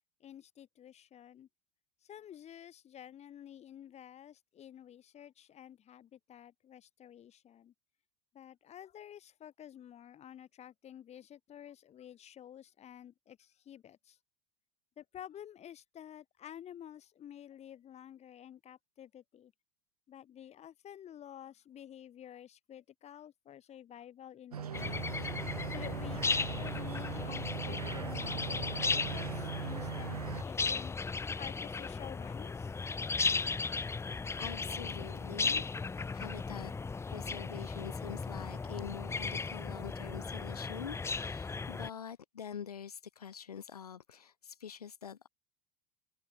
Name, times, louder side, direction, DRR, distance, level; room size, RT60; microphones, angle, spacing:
voice 1, 0.2-1.5 2.1-7.7 8.3-14.2 15.0-19.5 20.1-25.1 25.7-30.9 31.3-32.7, left 10 dB, 35° left, 6.6 m, -51 dB
sound 1, 24.5-30.4, right 8 dB, 75° right, 3.1 m, -40 dB
sound 2, 24.7-41.9, left 4 dB, 15° left, 1.1 m, -36 dB
voice 2, 34.0-36.7 37.1-45.3, left 8 dB, 75° left, 1.1 m, -46 dB
figure-of-eight pair, 75°, 19 cm